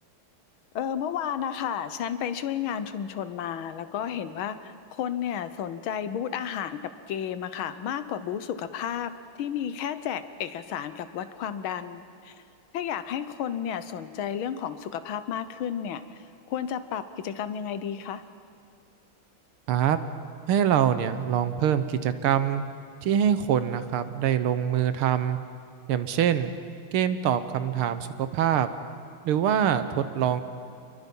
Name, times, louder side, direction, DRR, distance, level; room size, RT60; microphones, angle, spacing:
voice 1, 0.7-6.8 7.1-9.1 9.4-12.4 12.7-18.2, left 9 dB, 75° left, 12 dB, 1.7 m, -32 dB
voice 2, 19.7-20.0 20.5-22.6 23.0-25.4 25.9-26.5 26.9-28.7 29.3-30.4, right 9 dB, 90° right, 11 dB, 1.9 m, -24 dB
29.0 x 22.0 x 5.4 m, 2.6 s
omnidirectional pair, 2.3 m